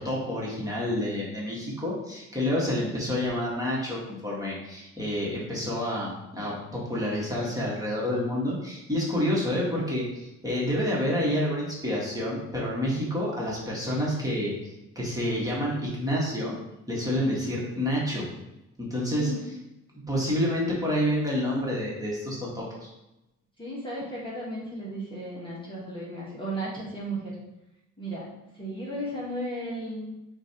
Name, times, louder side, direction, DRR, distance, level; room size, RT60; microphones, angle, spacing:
voice 1, 0.0-16.6 16.9-18.2 18.8-19.3 19.9-22.9, left 1 dB, 10° right, -5 dB, 1.6 m, -28 dB
voice 2, 23.6-27.4 28.0-30.1, right 1 dB, 15° left, -6 dB, 1.3 m, -35 dB
6.8 x 2.6 x 2.9 m, 0.93 s
cardioid pair, 90°, 30 cm